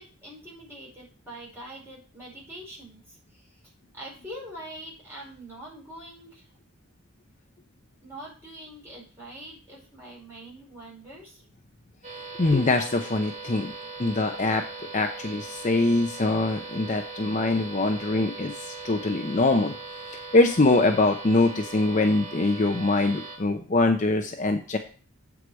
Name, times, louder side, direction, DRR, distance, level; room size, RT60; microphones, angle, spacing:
voice 1, 0.0-6.5 8.0-11.4, right 1 dB, 10° right, -5 dB, 4.8 m, -44 dB
sound 1, 12.0-23.4, right 3 dB, 35° right, 2.5 m, -40 dB
voice 2, 12.4-13.7 14.0-14.7 14.9-19.7 20.1-24.8, left 2 dB, 35° left, 5 dB, 0.6 m, -23 dB
8.3 x 4.9 x 6.1 m, 0.39 s
head